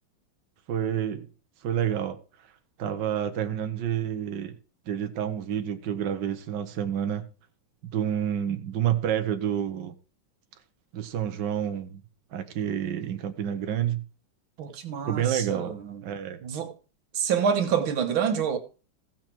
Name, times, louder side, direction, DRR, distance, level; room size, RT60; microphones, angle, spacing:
voice 1, 0.7-1.3 1.6-2.2 2.8-4.6 4.9-7.3 7.9-9.9 10.9-12.0 12.3-14.0 15.0-16.4, right 9 dB, 65° right, 1.5 m, -29 dB
voice 2, 14.6-16.0 16.4-16.7 17.1-18.6, right 7 dB, 85° right, 2.1 m, -27 dB
15.0 x 7.4 x 4.5 m
omnidirectional pair, 2.2 m